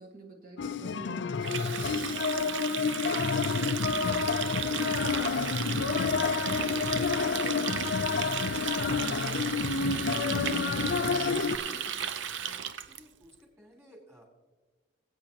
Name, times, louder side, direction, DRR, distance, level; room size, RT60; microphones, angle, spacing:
voice 1, 0.0-8.5 8.9-9.4 9.7-11.9, right 1 dB, 45° right, 0 dB, 1.7 m, -48 dB
sound 1, 0.6-11.6, left 5 dB, 70° left, 0.4 m, -29 dB
Water tap faucet, 1.4-13.0, right 8 dB, 80° right, 0.6 m, -35 dB
sound 2, 3.3-12.1, left 4 dB, 40° left, 0.8 m, -47 dB
voice 2, 12.8-14.3, equal, 15° right, 0 dB, 2.9 m, -56 dB
21.5 x 8.7 x 2.9 m, 1.3 s
head